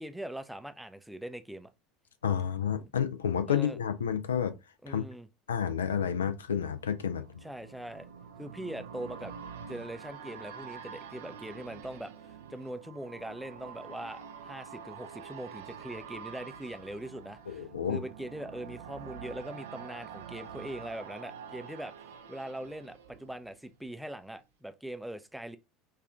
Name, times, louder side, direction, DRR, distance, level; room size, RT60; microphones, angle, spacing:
voice 1, 0.0-1.7 3.5-3.8 4.8-5.3 7.4-8.1 8.4-9.3 9.7-25.6, right 1 dB, 5° right, 0.4 m, -41 dB
voice 2, 2.2-4.5 4.9-5.0 5.5-7.2 17.5-18.0, left 8 dB, 75° left, 0.4 m, -30 dB
sound 1, 6.2-23.9 24.2-24.3, right 7 dB, 70° right, 0.4 m, -47 dB
5.3 x 2.4 x 2.3 m
figure-of-eight pair, 70°, 0 cm